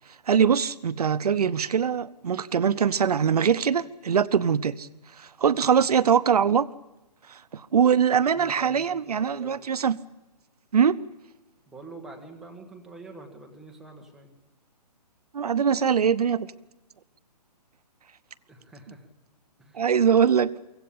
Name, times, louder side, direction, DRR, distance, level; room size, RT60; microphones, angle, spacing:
voice 1, 0.3-4.9 5.2-6.7 7.3-10.0 10.7-11.0 15.3-16.5 19.7-20.5, right 7 dB, 65° right, 17 dB, 0.8 m, -22 dB
voice 2, 8.2-9.6 11.7-14.3 18.5-19.1 19.6-19.9, right 3 dB, ahead, 1 dB, 1.6 m, -46 dB
24.0 x 16.5 x 8.6 m, 1.0 s
hypercardioid pair, 175°, 21 cm